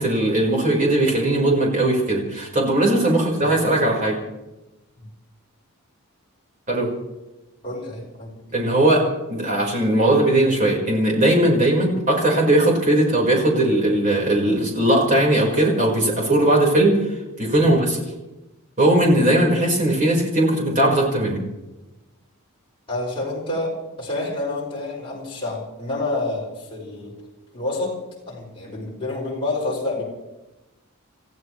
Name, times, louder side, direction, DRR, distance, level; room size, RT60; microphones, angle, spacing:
voice 1, 0.0-4.2 6.7-6.9 8.5-9.0 9.3-17.0 17.4-18.0 18.8-21.4, right 1 dB, 35° right, -2 dB, 4.8 m, -19 dB
voice 2, 3.1-3.9 7.6-8.5 17.6-17.8 22.9-27.2 27.5-28.0 28.3-30.0, left 2 dB, 25° left, -6 dB, 6.1 m, -29 dB
29.0 x 15.0 x 3.3 m, 1.0 s
head